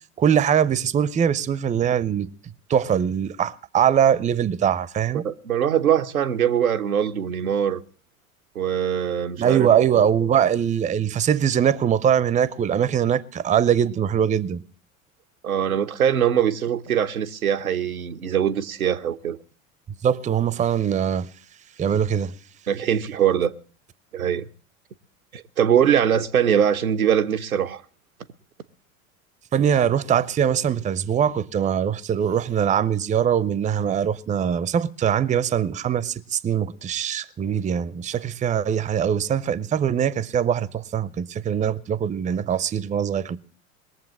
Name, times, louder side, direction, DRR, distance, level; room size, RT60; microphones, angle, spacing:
voice 1, 0.2-2.3 2.7-5.3 9.4-14.6 20.0-21.3 21.8-22.3 29.5-43.4, right 8 dB, 20° right, 0.6 m, -22 dB
voice 2, 5.1-7.8 8.5-10.0 15.4-19.4 22.7-23.5 24.1-24.5 25.3-27.8, right 9 dB, 90° right, 0.8 m, -22 dB
20.5 x 7.3 x 7.3 m
hypercardioid pair, 80°, 41 cm